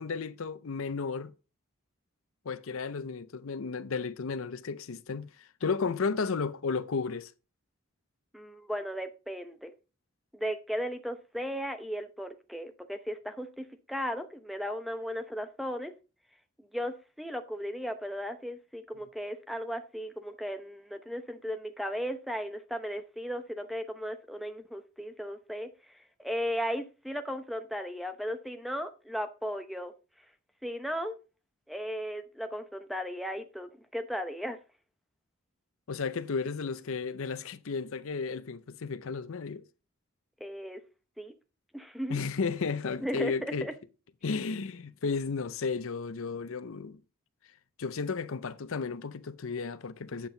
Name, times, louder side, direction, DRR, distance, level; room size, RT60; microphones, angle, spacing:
voice 1, 0.0-1.3 2.5-7.3 35.9-39.6 42.1-43.7 44.2-47.0 47.8-50.3, left 4 dB, 70° left, 0.6 m, -33 dB
voice 2, 8.3-9.7 10.3-15.9 16.6-25.7 26.2-29.9 30.6-31.2 31.7-34.6 40.4-40.8 41.2-41.3 41.7-42.2 43.0-43.7, equal, ahead, 0.8 m, -36 dB
8.8 x 7.5 x 3.9 m
head